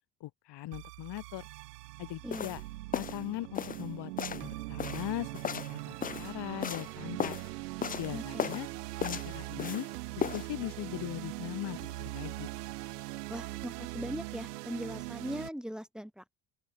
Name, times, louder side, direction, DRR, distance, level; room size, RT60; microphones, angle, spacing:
voice 1, 0.2-1.5 2.0-2.6 2.9-7.4 8.0-8.7 9.0-9.9 10.2-12.5, left 15 dB, 60° left, 3.6 m, -40 dB
sound 1, 0.7-15.5, right 19 dB, 80° right, 1.1 m, -41 dB
sound 2, 2.3-2.6 2.9-3.2 3.5-3.8 4.2-4.5 4.8-6.3 6.6-6.9 7.2-7.5 7.8-8.1 8.4-8.7 9.0-9.9 10.2-10.5, left 8 dB, 20° left, 0.4 m, -35 dB
voice 2, 8.1-8.6 13.3-16.4, equal, ahead, 6.1 m, -40 dB
open air
hypercardioid pair, 55°, 46 cm